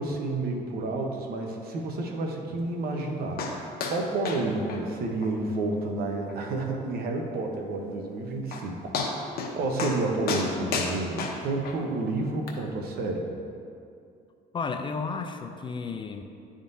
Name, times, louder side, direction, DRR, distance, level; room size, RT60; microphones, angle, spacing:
voice 1, 0.0-13.3, right 2 dB, 65° right, 2 dB, 0.9 m, -30 dB
sound 1, 3.4-3.6 3.8-4.0 4.3-4.4 4.7-4.8 5.2-5.3 5.7-5.8 6.3-6.4 8.1-8.2 8.5-8.6 8.9-9.5 9.8-10.0 10.3-11.8 12.5-12.6, left 5 dB, 65° left, 0.9 m, -30 dB
voice 2, 14.5-16.2, left 4 dB, 30° left, 6 dB, 0.4 m, -32 dB
11.0 x 3.7 x 2.7 m, 2.4 s
cardioid pair, 110°, 17 cm